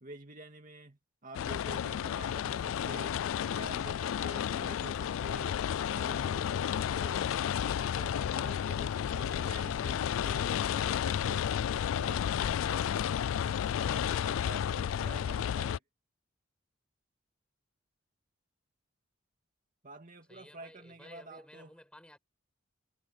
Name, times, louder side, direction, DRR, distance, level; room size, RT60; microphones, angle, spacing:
voice 1, 0.0-3.2 3.5-5.6 5.9-7.3 7.7-11.5 11.8-13.1 13.8-15.8 19.8-21.7, right 2 dB, 40° right, 2.5 m, -49 dB
sound 1, 1.3-15.8, left 9 dB, 85° left, 0.3 m, -32 dB
voice 2, 8.2-8.8 12.7-13.0 20.3-22.2, left 1 dB, 5° left, 5.2 m, -55 dB
head